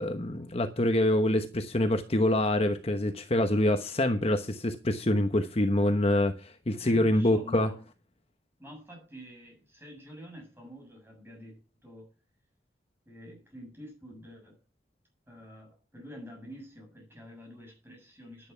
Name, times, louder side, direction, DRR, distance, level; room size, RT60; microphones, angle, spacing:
voice 1, 0.0-7.7, left 1 dB, 35° left, 1.1 m, -26 dB
voice 2, 6.8-7.8 8.6-12.1 13.0-14.6 15.3-18.5, equal, 15° right, 6.9 m, -48 dB
10.5 x 10.5 x 5.7 m
head